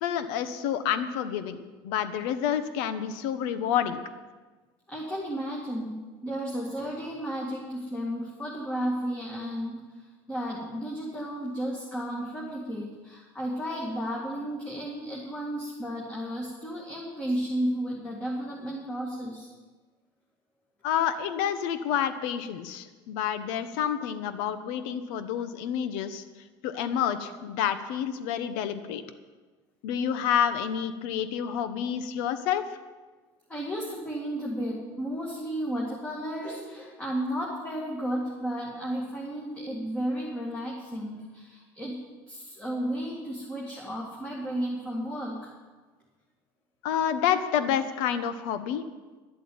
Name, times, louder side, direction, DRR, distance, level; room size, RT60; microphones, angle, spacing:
voice 1, 0.0-4.0 20.8-26.2 26.6-29.0 29.8-32.6 46.8-48.8, left 9 dB, 80° left, 12 dB, 1.0 m, -29 dB
voice 2, 4.9-19.5 33.5-42.0 42.3-45.5, equal, 10° left, -3 dB, 2.1 m, -33 dB
11.5 x 8.2 x 8.6 m, 1.3 s
cardioid pair, 145°, 11 cm